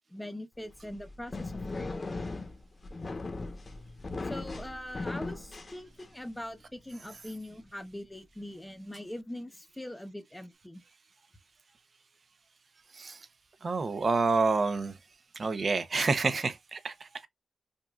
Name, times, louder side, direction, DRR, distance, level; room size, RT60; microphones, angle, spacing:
voice 1, 0.1-2.0 4.2-10.8, left 1 dB, 10° left, 0.8 m, -42 dB
sound 1, 0.7-6.4, left 3 dB, 35° left, 0.9 m, -38 dB
voice 2, 13.6-15.0 15.4-17.3, right 4 dB, 50° right, 0.7 m, -28 dB
5.2 x 2.5 x 2.3 m
cardioid pair, 90°, 0 cm